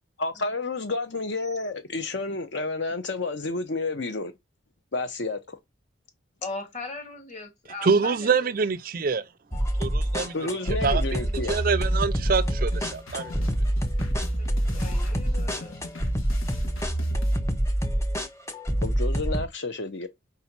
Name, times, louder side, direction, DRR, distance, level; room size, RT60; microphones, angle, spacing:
voice 1, 0.2-4.3 4.9-5.6 10.3-11.6 18.8-20.1, left 3 dB, 60° left, 0.7 m, -30 dB
voice 2, 6.4-8.3 12.4-12.5 14.7-15.9, left 3 dB, 35° left, 2.1 m, -39 dB
voice 3, 7.8-9.3 9.8-10.6 10.8-13.4, right 5 dB, 45° right, 0.4 m, -26 dB
sound 1, 9.5-19.4, equal, 15° left, 0.8 m, -26 dB
sound 2, 11.8-17.4, left 1 dB, 80° left, 1.7 m, -41 dB
4.9 x 4.1 x 5.9 m
head